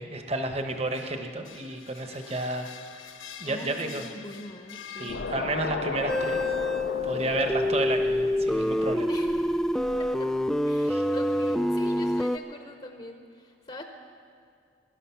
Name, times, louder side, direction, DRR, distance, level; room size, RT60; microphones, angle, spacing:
voice 1, 0.0-3.1 3.4-4.0 5.0-6.4 7.0-9.1 10.9-11.1, right 2 dB, 30° right, 5 dB, 1.1 m, -31 dB
sound 1, 0.7-5.9, left 8 dB, 90° left, 0.9 m, -46 dB
voice 2, 3.4-5.5 9.1-9.6 10.0-10.3 10.6-13.8, left 1 dB, 30° left, 4 dB, 0.9 m, -43 dB
sound 2, 5.1-10.4, left 4 dB, 65° left, 0.5 m, -36 dB
sound 3, 6.1-12.4, left 1 dB, ahead, 0.3 m, -26 dB
20.5 x 12.0 x 5.8 m, 2.4 s
head